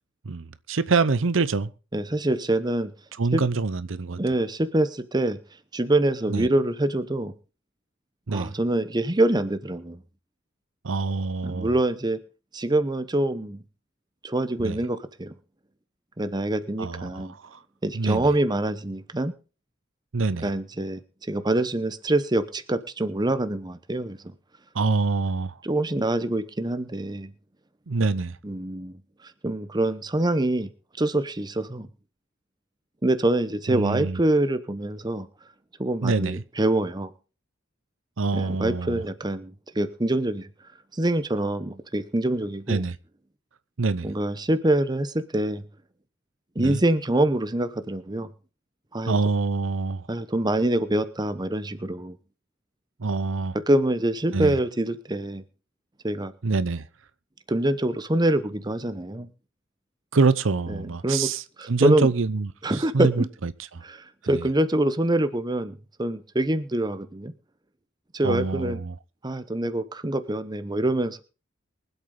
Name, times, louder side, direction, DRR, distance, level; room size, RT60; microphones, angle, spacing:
voice 1, 0.3-1.7 3.2-4.2 6.3-6.5 8.3-8.5 10.8-11.7 14.6-14.8 16.8-17.6 17.9-18.3 20.1-20.5 24.7-25.5 27.9-28.4 33.7-34.2 36.0-36.4 38.2-39.0 42.7-43.0 43.8-44.1 46.6-46.8 49.1-50.0 53.0-53.6 54.3-54.5 56.4-56.9 60.1-61.4 61.7-62.5 62.9-63.8 64.2-64.5 68.2-68.9, right 4 dB, 75° right, 0.7 m, -25 dB
voice 2, 1.9-2.9 3.3-3.4 4.2-5.4 5.7-7.3 8.3-10.0 11.4-12.2 12.5-13.6 14.2-15.3 16.2-17.3 17.8-19.4 20.4-24.3 25.6-27.3 28.4-29.0 29.4-30.7 31.0-31.9 33.0-35.3 35.8-37.1 38.3-40.5 40.9-42.9 44.0-45.6 46.5-48.3 48.9-49.2 50.1-52.2 53.5-55.4 56.0-56.3 57.5-59.3 60.7-61.3 61.6-62.1 62.6-63.3 63.8-67.4 68.1-68.8 69.2-71.2, right 1 dB, 20° right, 0.9 m, -25 dB
23.5 x 8.1 x 3.8 m
head